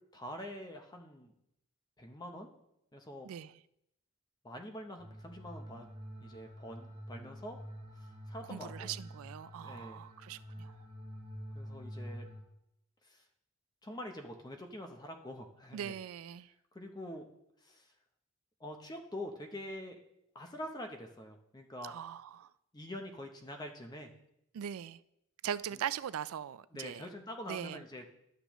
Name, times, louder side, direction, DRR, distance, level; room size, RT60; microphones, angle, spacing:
voice 1, 0.1-1.3 2.0-2.5 2.9-3.3 4.4-5.9 6.2-7.6 8.3-8.9 9.6-10.1 11.5-12.3 13.0-13.2 13.8-15.9 16.7-17.3 17.6-17.9 18.6-20.0 20.3-21.9 22.7-24.1 25.7-25.8 26.7-28.1, left 1 dB, 20° left, 0.7 m, -45 dB
sound 1, 5.0-12.4, equal, 25° right, 2.1 m, -47 dB
voice 2, 8.5-10.8 15.7-16.5 21.8-22.5 24.5-25.0 25.4-27.0 27.5-27.8, right 9 dB, 75° right, 0.3 m, -40 dB
12.0 x 6.7 x 3.0 m
head